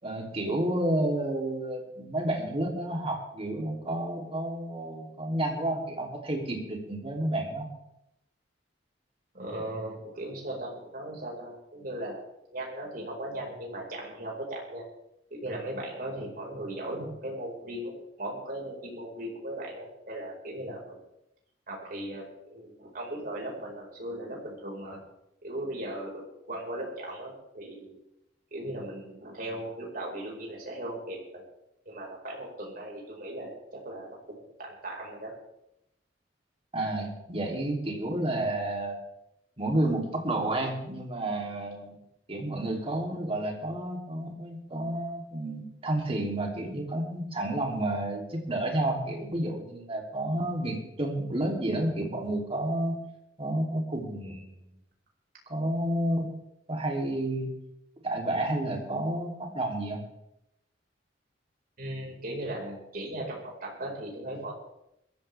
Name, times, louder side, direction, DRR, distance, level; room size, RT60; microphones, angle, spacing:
voice 1, 0.0-7.7 36.7-39.0 39.6-41.9 42.3-53.0 53.4-54.7 55.5-56.3 56.7-57.5 58.0-60.0, right 1 dB, 35° right, 1 dB, 3.1 m, -30 dB
voice 2, 9.3-12.2 12.5-14.8 15.3-21.0 21.7-25.0 25.4-26.2 26.5-28.0 28.5-31.4 31.8-35.3 61.8-64.5, right 1 dB, 55° right, -2 dB, 5.0 m, -38 dB
21.5 x 14.5 x 3.5 m, 0.82 s
head